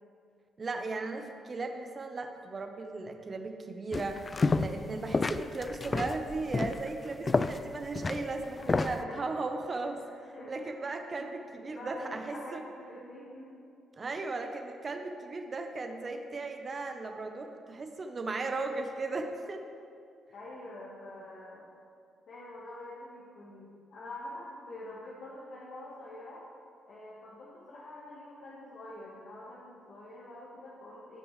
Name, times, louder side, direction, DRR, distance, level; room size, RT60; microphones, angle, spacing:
voice 1, 0.6-4.2 4.5-10.0 10.5-12.6 14.0-19.6, right 3 dB, 35° right, 5 dB, 0.9 m, -36 dB
sound 1, 3.9-4.9 5.1-9.0, left 3 dB, 30° left, 0.3 m, -30 dB
voice 2, 8.6-9.3 10.0-11.3 11.7-13.5 20.3-21.6 22.3-26.4 26.9-31.2, left 1 dB, 60° left, -6 dB, 1.5 m, -46 dB
15.5 x 6.0 x 3.3 m, 2.4 s
cardioid pair, 90°, 0 cm